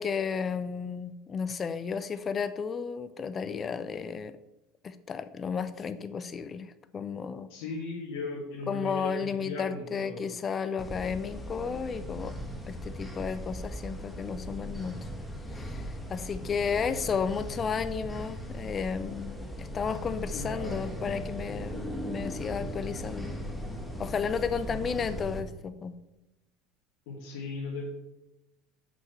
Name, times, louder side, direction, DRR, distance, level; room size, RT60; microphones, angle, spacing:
voice 1, 0.0-4.4 4.8-7.5 8.7-12.3 12.7-15.0 15.6-23.4 24.0-25.9, left 6 dB, 35° left, 12 dB, 0.4 m, -33 dB
voice 2, 7.5-10.3 16.8-17.1 20.3-21.0 27.1-27.9, left 3 dB, 75° left, -4 dB, 1.9 m, -37 dB
sound 1, 10.8-25.4, equal, 5° left, 1.3 m, -38 dB
6.0 x 5.7 x 5.6 m, 0.97 s
supercardioid pair, 95°, 0 cm